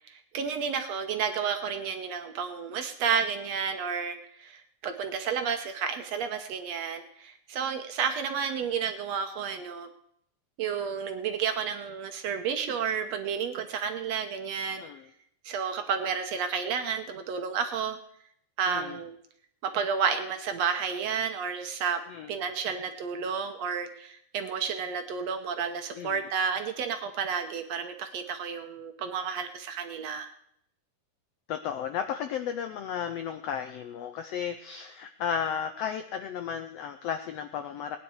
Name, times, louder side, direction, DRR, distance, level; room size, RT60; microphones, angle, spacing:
voice 1, 0.1-9.9 10.6-14.8 15.5-18.0 18.6-19.2 19.6-22.0 22.3-30.3, right 6 dB, 65° right, 7 dB, 1.8 m, -31 dB
voice 2, 18.7-19.0 22.1-22.3 26.0-26.2 31.5-38.0, left 8 dB, 85° left, 8 dB, 1.4 m, -34 dB
19.0 x 10.0 x 4.8 m, 0.69 s
omnidirectional pair, 3.7 m